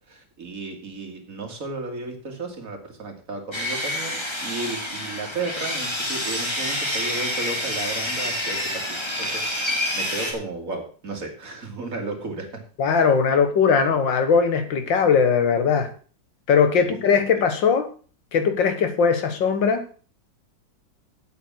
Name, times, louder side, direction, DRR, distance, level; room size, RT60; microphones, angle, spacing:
voice 1, 0.1-12.6 16.7-16.9, right 3 dB, 45° right, 2 dB, 2.5 m, -34 dB
Sawing, 3.5-10.3, left 1 dB, 15° left, 2.0 m, -28 dB
voice 2, 12.8-15.9 16.5-17.9 18.3-19.8, left 6 dB, 85° left, 9 dB, 2.1 m, -20 dB
8.6 x 8.2 x 6.1 m, 0.40 s
omnidirectional pair, 2.0 m